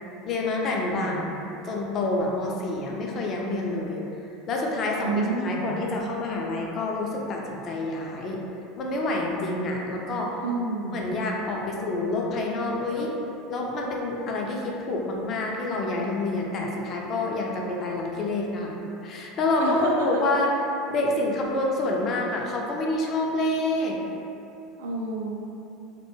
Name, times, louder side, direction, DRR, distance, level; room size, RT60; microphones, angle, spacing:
voice 1, 0.2-4.0 4.5-5.1 5.4-8.4 8.8-10.4 10.9-13.2 13.5-20.5 20.9-24.0, left 2 dB, 40° left, -1 dB, 0.4 m, -27 dB
voice 2, 5.0-5.7 10.4-11.0 19.5-20.2 24.8-25.3, right 2 dB, 65° right, -2 dB, 0.3 m, -29 dB
2.2 x 2.1 x 3.0 m, 2.8 s
figure-of-eight pair, 75°, 0 cm